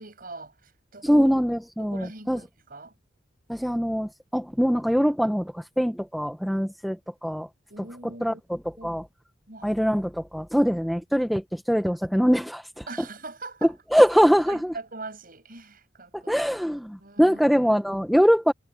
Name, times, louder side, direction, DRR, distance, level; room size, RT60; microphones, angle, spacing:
voice 1, 0.0-1.3 1.8-2.9 7.7-8.4 8.8-9.0 9.5-9.7 12.9-14.1 14.5-16.3 17.0-17.6, right 3 dB, 50° right, 7.7 m, -42 dB
voice 2, 1.0-2.4 3.5-7.5 8.2-8.6 8.8-9.0 9.6-12.8 13.9-14.7 16.1-18.5, equal, ahead, 0.7 m, -23 dB
head